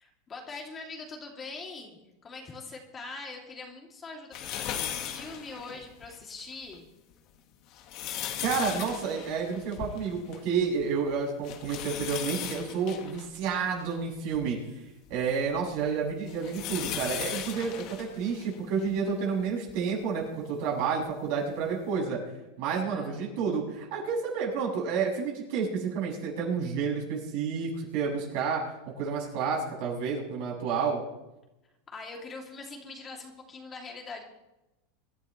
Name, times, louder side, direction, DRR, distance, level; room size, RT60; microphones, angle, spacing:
voice 1, 0.0-6.9 22.7-23.2 31.9-34.2, left 3 dB, 25° left, 1 dB, 2.9 m, -43 dB
sound 1, 4.3-6.2 6.7-6.8 7.5-10.5 10.8-10.9 11.4-14.4 15.1-19.0 19.7-19.8 21.1-21.2, left 10 dB, 50° left, 1.8 m, -38 dB
voice 2, 8.4-14.6 15.1-22.2 22.6-31.0, right 5 dB, 60° right, -2 dB, 7.1 m, -30 dB
25.0 x 11.5 x 3.3 m, 0.95 s
supercardioid pair, 125°, 0 cm